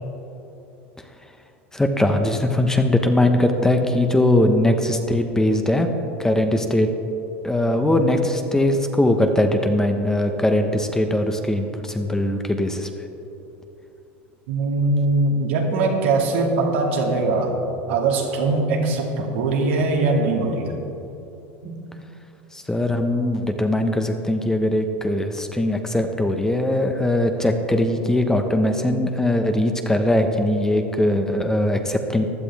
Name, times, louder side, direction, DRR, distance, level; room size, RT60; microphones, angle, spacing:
voice 1, 1.7-5.9 6.2-6.9 7.4-12.9 22.5-32.2, left 1 dB, 10° left, 5 dB, 1.1 m, -20 dB
voice 2, 14.5-17.6 17.9-20.8 21.6-21.8, right 3 dB, 75° right, 0 dB, 2.3 m, -21 dB
15.5 x 11.0 x 3.5 m, 3.0 s
hypercardioid pair, 95°, 6 cm